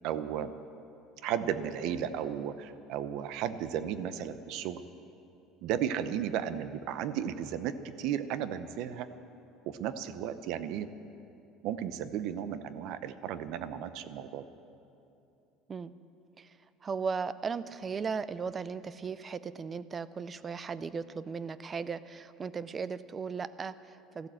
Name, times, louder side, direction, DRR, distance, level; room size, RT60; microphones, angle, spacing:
voice 1, 0.0-0.5 1.2-4.8 5.6-9.1 9.7-10.9 11.6-14.4, right 9 dB, 65° right, 12 dB, 0.8 m, -34 dB
voice 2, 16.8-24.3, right 5 dB, 25° right, 16 dB, 0.4 m, -37 dB
14.5 x 12.5 x 7.7 m, 2.8 s
cardioid pair, 145°, 0 cm